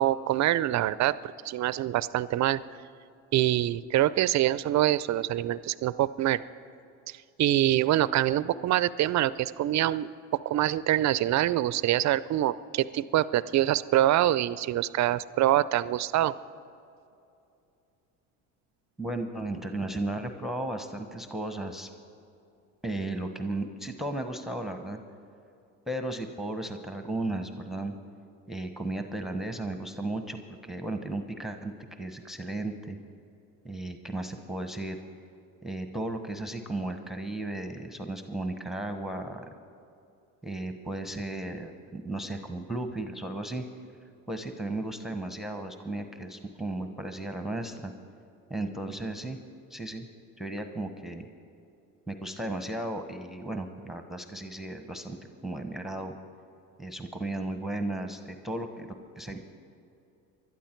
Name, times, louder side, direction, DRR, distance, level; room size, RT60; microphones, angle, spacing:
voice 1, 0.0-2.6 3.3-6.4 7.1-10.1 10.4-16.3, right 13 dB, 50° right, 17 dB, 0.5 m, -25 dB
voice 2, 19.0-21.9 22.8-25.0 25.9-27.9 28.5-30.4 30.6-31.7 32.0-33.0 33.6-35.0 35.6-39.5 40.4-43.6 44.3-47.9 48.5-49.4 49.7-50.1 50.4-51.3 52.1-55.2 55.4-56.1 56.8-59.4, right 2 dB, ahead, 6 dB, 1.0 m, -35 dB
20.5 x 12.0 x 4.5 m, 2.6 s
supercardioid pair, 80°, 37 cm